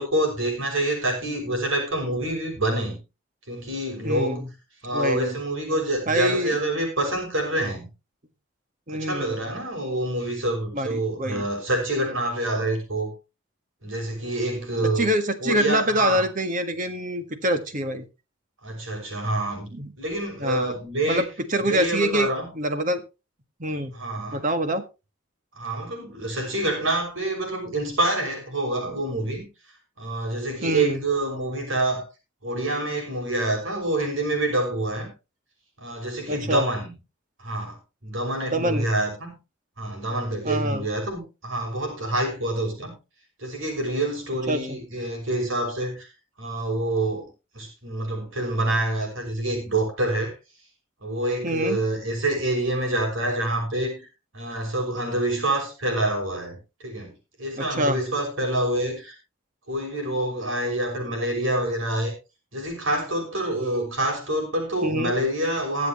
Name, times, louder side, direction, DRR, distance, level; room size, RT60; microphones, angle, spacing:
voice 1, 0.0-3.0 3.5-4.4 4.8-7.9 8.9-13.1 13.8-15.1 15.4-16.3 18.6-19.7 20.0-21.3 21.6-22.5 23.9-24.5 25.6-29.5 30.0-32.0 32.4-35.1 35.8-36.9 37.4-39.3 39.8-42.9 43.4-46.1 46.4-47.3 47.5-50.3 51.0-54.1 54.3-57.1 57.4-59.2 59.7-62.1 62.5-65.9, right 1 dB, 80° right, 6.1 m, -27 dB
voice 2, 4.0-4.5 4.9-5.4 6.1-6.6 8.9-9.4 10.7-11.4 14.8-18.0 19.7-19.9 20.4-20.8 21.1-22.3 22.5-23.0 23.6-23.9 24.3-24.8 30.6-31.0 36.3-36.7 38.5-38.9 40.4-40.9 44.5-44.8 51.4-51.8 57.5-58.0 64.8-65.1, right 1 dB, 40° right, 1.6 m, -25 dB
22.5 x 7.8 x 3.1 m
head